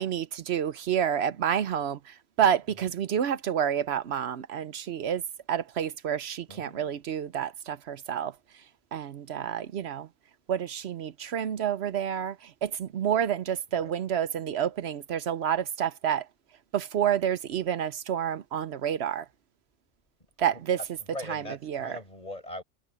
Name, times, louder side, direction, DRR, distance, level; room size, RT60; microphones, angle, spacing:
voice 1, 0.0-5.2 5.5-8.3 8.9-10.1 10.5-12.4 12.6-16.3 16.7-19.2 20.4-20.8 21.3-22.0, right 9 dB, 70° right, 0.9 m, -29 dB
voice 2, 6.5-6.9 13.7-13.9 20.5-20.6 21.0-22.6, left 1 dB, 35° left, 6.4 m, -41 dB
omnidirectional pair, 1.2 m